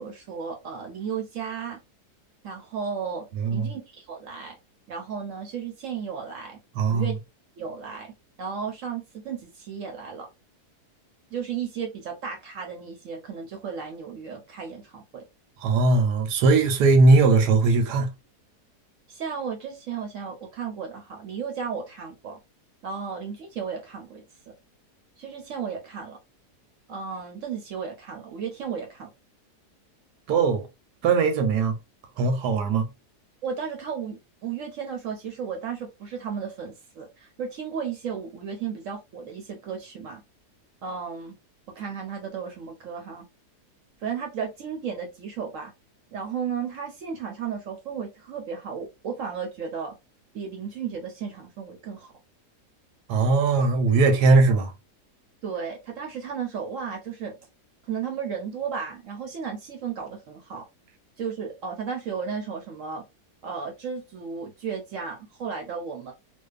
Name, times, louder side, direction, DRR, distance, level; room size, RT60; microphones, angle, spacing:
voice 1, 0.0-1.8 2.4-3.3 3.5-4.5 4.9-6.6 6.9-7.2 7.6-8.1 8.4-10.3 11.3-15.2 19.1-22.4 22.8-24.2 25.2-26.2 26.9-29.1 33.4-40.2 40.8-41.3 41.8-43.3 44.0-45.7 46.1-49.9 50.3-52.1 55.4-57.3 57.9-60.7 61.2-63.0 63.4-66.1, right 6 dB, 65° right, 0.9 m, -34 dB
voice 2, 6.8-7.1 15.6-18.1 30.3-30.6 31.0-31.8 32.2-32.9 53.1-54.7, right 3 dB, 90° right, 1.2 m, -19 dB
2.7 x 2.3 x 2.2 m
omnidirectional pair, 1.7 m